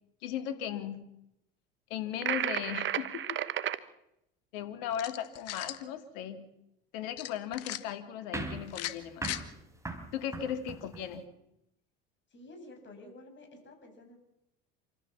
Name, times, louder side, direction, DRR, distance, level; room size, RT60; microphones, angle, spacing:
voice 1, 0.2-1.0 1.9-3.4 4.5-6.4 6.9-9.3 10.1-11.2, left 9 dB, 75° left, 8 dB, 2.7 m, -37 dB
sound 1, 2.2-3.8, right 10 dB, 40° right, 1.2 m, -32 dB
sound 2, 4.9-5.8 7.2-7.8 8.7-9.4, left 14 dB, 60° left, 1.5 m, -38 dB
sound 3, 8.3-11.2, right 2 dB, 10° right, 3.9 m, -40 dB
voice 2, 12.3-14.2, left 1 dB, 40° left, 5 dB, 7.6 m, -51 dB
27.5 x 14.0 x 7.3 m, 0.82 s
hypercardioid pair, 80°, 29 cm